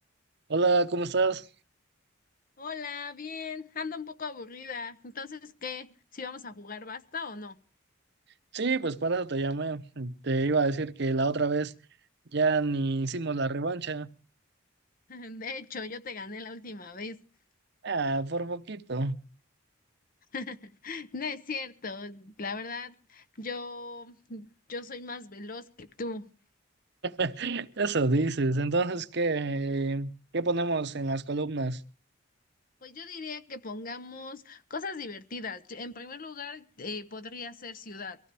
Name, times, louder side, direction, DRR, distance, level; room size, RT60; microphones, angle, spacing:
voice 1, 0.5-1.4 8.5-11.7 12.3-14.1 17.8-19.2 27.0-31.8, right 3 dB, 55° right, 0.9 m, -28 dB
voice 2, 2.6-7.6 15.1-17.2 20.3-26.3 32.8-38.2, left 4 dB, 45° left, 1.0 m, -39 dB
23.5 x 15.5 x 3.4 m
head